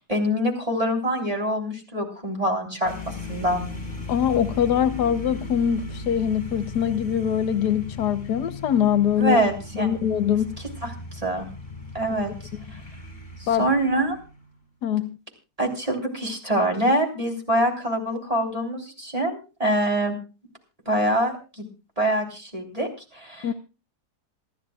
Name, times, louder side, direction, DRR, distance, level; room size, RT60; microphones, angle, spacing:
voice 1, 0.0-3.6 9.2-9.9 10.8-11.5 11.9-12.3 13.4-14.2 15.6-20.1 20.9-21.7 22.0-23.5, right 1 dB, 20° right, 3.5 m, -25 dB
sound 1, 2.8-14.6, left 2 dB, 30° left, 4.4 m, -37 dB
voice 2, 4.1-9.4 9.7-10.6 13.5-13.7 14.8-15.2 23.4-23.5, left 9 dB, 80° left, 1.4 m, -23 dB
27.5 x 11.5 x 2.3 m
omnidirectional pair, 1.7 m